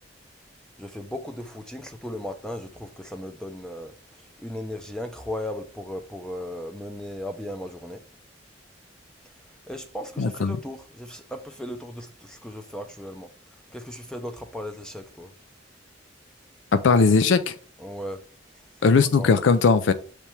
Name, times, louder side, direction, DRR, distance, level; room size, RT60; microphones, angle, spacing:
voice 1, 0.8-8.0 9.7-13.3 13.7-15.3 17.8-18.2 19.2-19.3, left 1 dB, 5° left, 0.4 m, -36 dB
voice 2, 10.2-10.6 16.7-17.5 18.8-19.9, left 4 dB, 75° left, 0.4 m, -19 dB
7.1 x 3.4 x 4.4 m
head